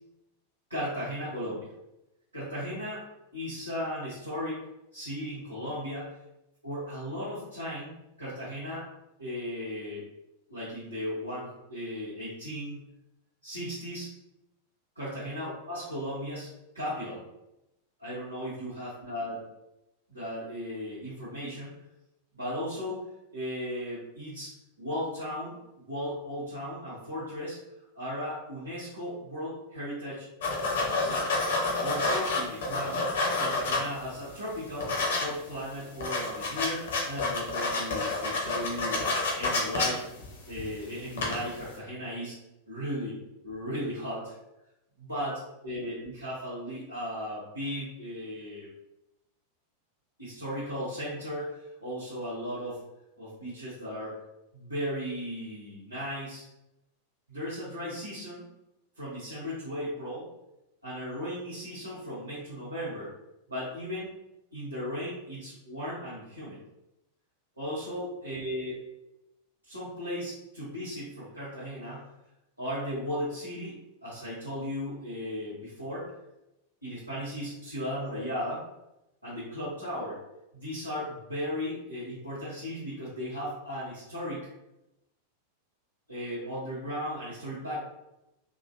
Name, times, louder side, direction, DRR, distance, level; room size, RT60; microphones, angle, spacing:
voice 1, 0.7-1.7 2.3-3.0 3.3-4.6 4.9-6.1 6.6-8.8 9.2-10.0 10.5-12.9 13.4-14.1 14.9-16.5 16.7-17.2 18.0-19.4 20.1-21.7 22.3-23.0 23.3-24.5 24.8-27.6 27.9-30.3 31.0-31.3 31.8-33.1 33.4-39.0 39.4-40.0 40.5-42.3 42.7-44.2 45.0-48.7 50.2-52.8 53.2-54.1 54.5-56.5 57.3-58.4 59.0-60.2 60.8-63.1 63.5-64.1 64.5-66.6 67.6-68.8 69.6-72.1 72.6-73.8 74.0-76.1 76.8-78.6 79.2-80.2 80.5-84.5 86.1-87.8, equal, 85° right, -13 dB, 1.3 m, -36 dB
sound 1, 30.4-34.2 34.5-35.2 35.6-35.7 35.9-40.8 41.1-41.6, left 3 dB, 60° left, 0.8 m, -29 dB
3.7 x 2.4 x 2.5 m, 0.89 s
figure-of-eight pair, 90°, 0 cm